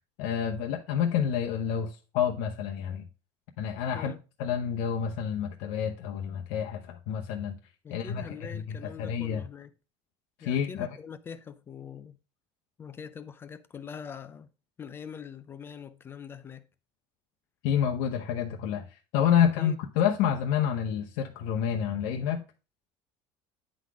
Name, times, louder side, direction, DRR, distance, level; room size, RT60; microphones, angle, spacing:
voice 1, 0.2-3.0 3.6-4.1 4.4-7.6 7.9-9.4 10.4-10.9 17.6-22.4, left 8 dB, 75° left, 0.9 m, -28 dB
voice 2, 7.8-9.7 10.4-12.2 12.8-14.5 14.8-16.7 19.6-19.8, left 7 dB, 20° left, 0.4 m, -43 dB
9.7 x 4.0 x 4.7 m
cardioid pair, 175°, 12 cm